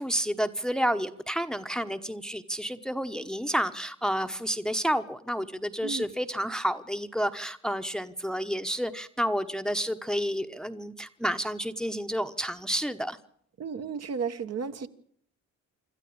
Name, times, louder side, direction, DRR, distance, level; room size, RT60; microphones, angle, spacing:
voice 1, 0.0-13.2, equal, ahead, 1.0 m, -30 dB
voice 2, 13.6-14.9, right 6 dB, 55° right, 1.5 m, -33 dB
26.0 x 13.0 x 8.7 m
cardioid pair, 90°, 30 cm